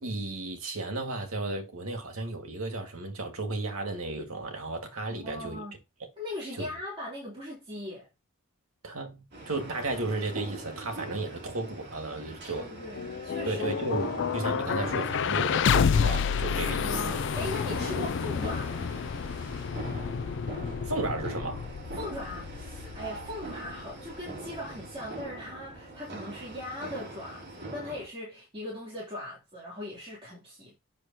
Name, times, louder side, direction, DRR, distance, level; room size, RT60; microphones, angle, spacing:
voice 1, 0.0-5.6 6.6-6.7 8.8-12.7 13.5-17.2 20.8-21.7, right 2 dB, 80° right, 1.9 m, -34 dB
voice 2, 5.1-5.8 6.2-8.1 12.5-13.8 14.6-14.7 16.8-18.9 21.9-30.7, left 1 dB, 25° right, 3.0 m, -39 dB
sound 1, 9.3-28.1, right 2 dB, 50° right, 3.1 m, -43 dB
sound 2, 12.7-24.7, left 6 dB, 55° left, 0.4 m, -30 dB
8.4 x 6.1 x 2.9 m
head